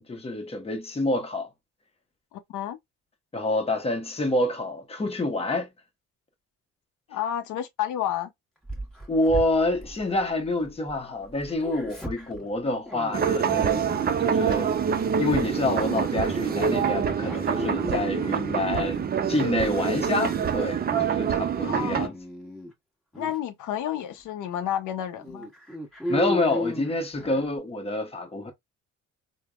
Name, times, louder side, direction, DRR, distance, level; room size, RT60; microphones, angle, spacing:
voice 1, 0.0-1.5 3.3-5.7 9.1-13.9 14.2-14.7 15.2-22.1 26.1-28.5, left 2 dB, 20° left, 0.8 m, -27 dB
voice 2, 7.1-8.3 21.7-22.1 23.2-25.5, left 11 dB, 80° left, 0.6 m, -30 dB
Dog, 8.6-11.0 11.2-14.6 15.0-15.2 16.0-19.1 19.6-20.3 20.7-21.1 21.5-22.7 23.1-23.4 24.0-24.1 24.5-24.6 25.2-27.5, equal, ahead, 1.2 m, -36 dB
sound 1, 13.1-22.1, right 7 dB, 35° right, 0.4 m, -26 dB
3.4 x 2.0 x 2.2 m
cardioid pair, 90°, 30 cm